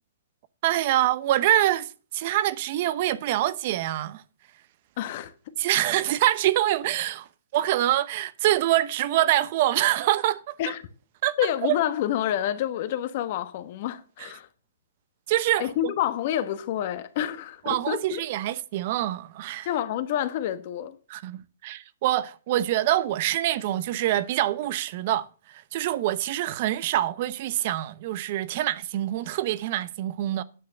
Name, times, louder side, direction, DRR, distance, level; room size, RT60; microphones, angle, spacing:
voice 1, 0.6-4.2 5.6-10.6 11.2-11.4 11.6-11.8 14.2-14.3 15.3-15.9 17.6-19.7 21.1-30.4, right 14 dB, 45° right, 0.8 m, -25 dB
voice 2, 5.0-5.6 10.6-10.8 11.4-14.5 15.6-18.2 19.6-21.0, left 11 dB, 50° left, 1.2 m, -28 dB
10.0 x 6.6 x 6.5 m
hypercardioid pair, 130°, 0 cm